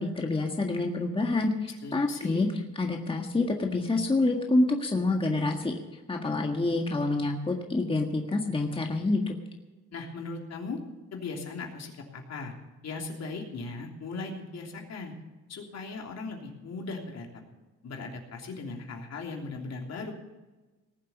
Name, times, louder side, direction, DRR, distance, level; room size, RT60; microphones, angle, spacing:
voice 1, 0.0-2.5 2.8-5.7 6.1-9.3, left 2 dB, 15° left, 2 dB, 1.7 m, -27 dB
voice 2, 1.8-2.4 9.9-10.8 11.1-12.5 12.8-15.1 15.5-17.4 17.8-20.1, left 3 dB, 60° left, 1 dB, 3.2 m, -38 dB
19.0 x 7.4 x 7.3 m, 1.2 s
cardioid pair, 90°, 30 cm